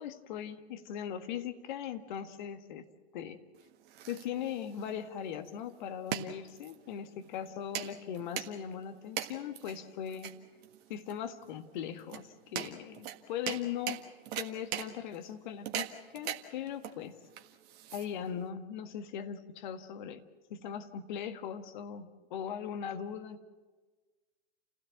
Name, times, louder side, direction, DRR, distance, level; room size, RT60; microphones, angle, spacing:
voice 1, 0.0-2.9 3.1-3.4 4.1-10.4 10.9-14.0 14.3-17.2 17.9-20.2 20.5-23.4, left 9 dB, 45° left, 8 dB, 1.7 m, -39 dB
sound 1, 3.5-18.5, right 11 dB, 30° right, 1.6 m, -41 dB
29.0 x 16.5 x 7.3 m, 1.3 s
figure-of-eight pair, 115°, 33 cm